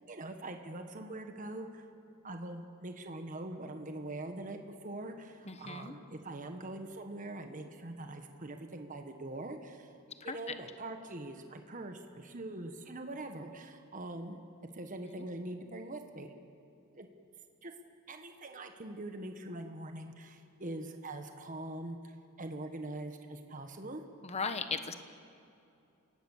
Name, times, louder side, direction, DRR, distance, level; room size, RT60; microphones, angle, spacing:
voice 1, 0.1-1.9 2.2-9.9 10.2-14.4 14.7-16.3 16.9-17.1 17.6-17.7 18.1-22.0 22.4-24.0, right 2 dB, 35° right, 6 dB, 1.4 m, -43 dB
voice 2, 5.4-5.9 10.2-10.4 24.2-24.9, left 4 dB, 30° left, 9 dB, 1.1 m, -37 dB
29.0 x 17.5 x 7.3 m, 2.6 s
head